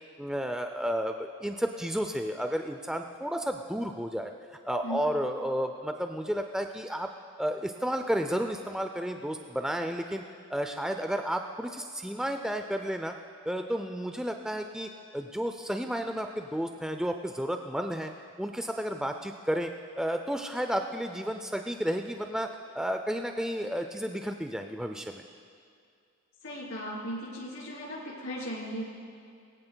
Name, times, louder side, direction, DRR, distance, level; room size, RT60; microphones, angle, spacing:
voice 1, 0.0-4.3 4.7-7.1 7.4-10.2 10.5-13.1 13.5-18.1 18.4-19.7 20.0-22.5 22.7-25.2, equal, 5° right, 5 dB, 0.3 m, -32 dB
voice 2, 26.4-28.8, equal, 70° left, -4 dB, 3.3 m, -37 dB
18.5 x 17.5 x 2.2 m, 2.4 s
head